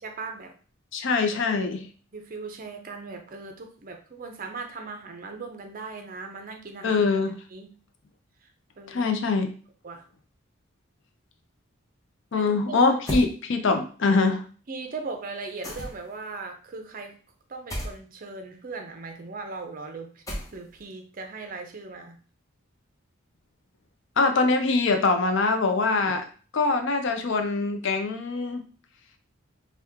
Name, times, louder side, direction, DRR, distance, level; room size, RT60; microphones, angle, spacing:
voice 1, 0.0-0.5 2.1-7.1 7.5-7.7 8.4-8.5 8.8-9.1 9.8-10.0 12.3-13.0 14.7-17.1 17.5-20.2 20.5-22.2 26.1-26.2, right 4 dB, 40° right, 5 dB, 0.5 m, -38 dB
voice 2, 0.9-1.9 6.8-7.4 8.9-9.5 12.3-14.4 24.2-26.2 26.5-28.6, left 3 dB, 60° left, 6 dB, 0.5 m, -23 dB
sound 1, 13.1-13.3 15.6-16.2 17.7-18.0 20.3-20.8, equal, 15° left, 0.7 m, -32 dB
2.9 x 2.2 x 3.5 m, 0.40 s
head